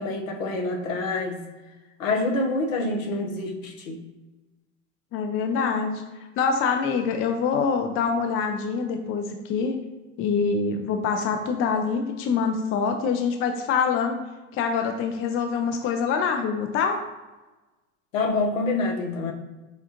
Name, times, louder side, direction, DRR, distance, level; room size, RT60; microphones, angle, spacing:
voice 1, 0.0-1.5 2.0-4.0 18.1-19.3, left 2 dB, 75° left, 2 dB, 1.0 m, -26 dB
voice 2, 5.1-6.0 6.4-9.7 10.2-14.2 14.5-17.0, left 5 dB, 35° left, 5 dB, 0.5 m, -25 dB
6.2 x 2.4 x 2.9 m, 1.2 s
hypercardioid pair, 90°, 40 cm